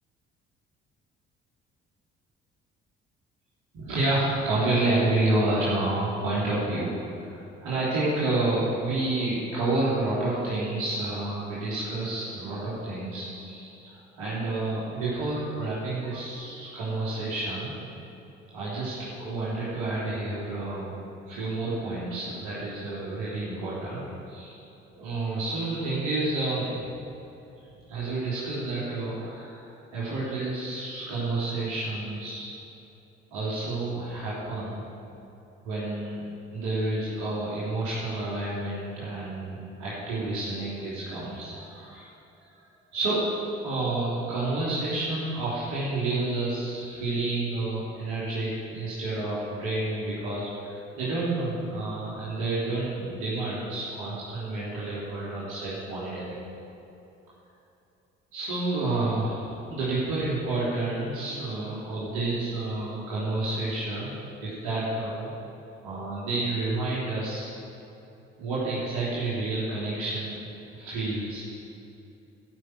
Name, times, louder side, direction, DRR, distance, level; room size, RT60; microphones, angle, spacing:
voice 1, 3.7-7.0 7.2-13.9 14.2-17.7 18.5-21.0 21.3-24.6 24.9-27.0 27.9-32.5 33.3-34.8 35.6-36.2 36.5-42.1 42.9-43.3 43.6-56.4 58.3-65.3 65.8-67.5 68.4-70.4 70.7-71.4, right 2 dB, 70° right, -8 dB, 3.4 m, -29 dB
14.5 x 5.9 x 7.9 m, 2.8 s
hypercardioid pair, 50°, 30 cm